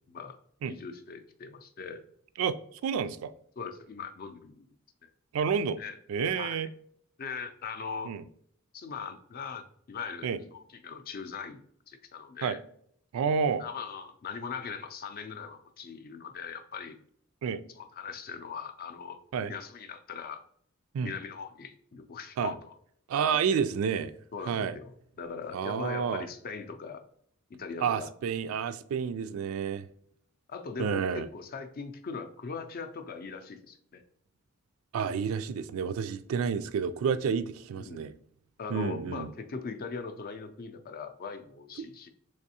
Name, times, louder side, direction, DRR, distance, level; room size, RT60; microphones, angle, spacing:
voice 1, 0.7-2.0 3.6-4.7 5.0-5.1 5.8-6.0 6.4-6.6 7.2-8.1 8.7-11.6 11.9-12.6 13.6-17.0 17.7-19.2 19.5-20.4 21.0-22.7 24.3-24.9 25.2-27.0 27.5-28.1 30.5-34.0 37.7-38.1 38.6-42.1, left 5 dB, 45° left, 0.4 m, -40 dB
voice 2, 2.8-3.3 5.3-5.8 6.1-6.7 8.1-8.2 10.2-10.4 12.4-12.6 13.1-13.6 17.4-17.6 19.3-19.5 20.9-21.1 22.4-22.5 23.1-24.1 24.5-24.7 25.5-26.3 27.8-29.9 30.8-31.3 34.9-38.1 38.7-39.3, right 6 dB, 90° right, 0.3 m, -29 dB
3.5 x 3.2 x 2.7 m
head